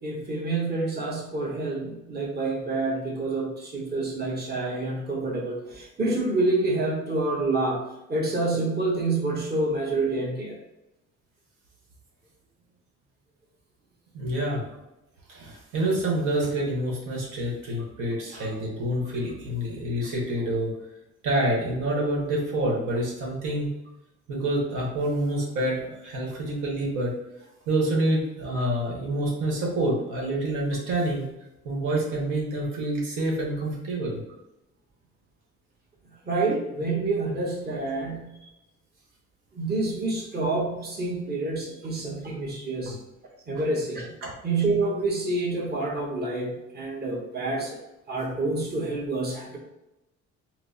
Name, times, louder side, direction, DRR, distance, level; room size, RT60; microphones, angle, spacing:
voice 1, 0.0-10.6 18.3-18.5 36.3-38.4 39.5-43.0 43.5-44.1 44.4-47.8 48.1-49.6, right 2 dB, 35° right, -2 dB, 1.0 m, -28 dB
voice 2, 14.1-14.6 15.3-20.7 21.2-23.7 24.3-27.1 27.7-31.3 31.6-34.2 42.8-42.9 44.2-44.3, right 1 dB, 90° right, -3 dB, 1.1 m, -27 dB
4.5 x 2.1 x 2.7 m, 0.92 s
cardioid pair, 90°, 30 cm